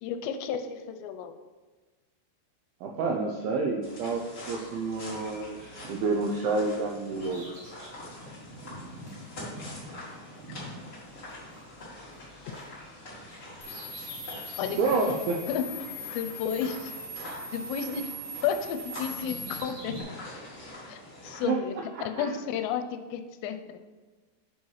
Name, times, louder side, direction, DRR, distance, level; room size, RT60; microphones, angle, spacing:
voice 1, 0.0-1.3 14.6-14.8 15.5-15.6 16.1-16.9 17.2-18.1 18.4-20.0 20.9-21.7 22.1-23.8, left 8 dB, 85° left, 8 dB, 2.7 m, -32 dB
voice 2, 2.8-4.2 4.5-7.6 14.8-15.4 21.4-21.6 21.9-22.3, right 3 dB, 85° right, 1 dB, 2.1 m, -29 dB
sound 1, 3.8-21.4, left 1 dB, 50° left, 0.8 m, -45 dB
Bird vocalization bird call bird song, 7.2-11.8 12.1-14.8 15.3-15.4 16.3-17.7 18.0-20.0, right 1 dB, 60° right, 1.5 m, -47 dB
sound 2, 13.6-19.6, left 1 dB, 70° left, 2.8 m, -41 dB
7.7 x 3.1 x 5.5 m, 1.3 s
omnidirectional pair, 5.0 m